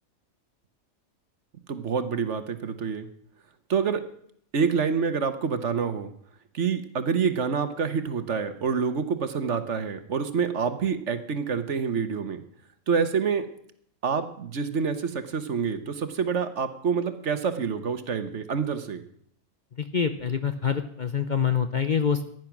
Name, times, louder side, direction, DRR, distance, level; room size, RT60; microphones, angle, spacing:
voice 1, 1.7-3.1 3.7-4.0 4.5-6.1 6.5-12.4 12.9-13.5 14.0-19.0, right 6 dB, 55° right, 10 dB, 1.4 m, -27 dB
voice 2, 19.8-22.2, left 7 dB, 40° left, 9 dB, 0.8 m, -26 dB
15.5 x 10.5 x 6.0 m, 0.66 s
omnidirectional pair, 1.5 m